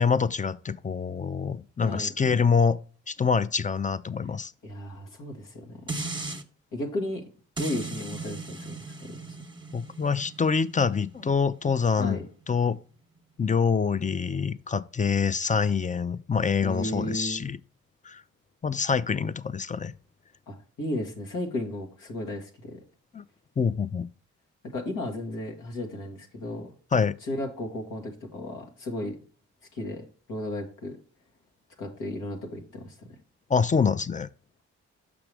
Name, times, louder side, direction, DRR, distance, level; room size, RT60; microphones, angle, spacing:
voice 1, 0.0-2.8 3.1-4.5 9.7-12.8 13.4-17.6 18.0-18.2 18.6-19.9 23.1-23.2 23.6-24.1 26.9-27.2 33.5-34.3, left 5 dB, 25° left, 0.5 m, -25 dB
voice 2, 4.6-5.8 6.7-7.2 7.6-9.4 12.0-12.2 16.6-17.5 20.5-22.8 24.6-26.7 27.3-29.2 29.7-31.0 31.8-32.9, left 1 dB, 85° left, 1.7 m, -34 dB
sound 1, 5.9-6.4 7.6-12.7 13.2-13.3, right 3 dB, 15° right, 1.1 m, -38 dB
6.0 x 5.9 x 3.3 m
supercardioid pair, 45°, 31 cm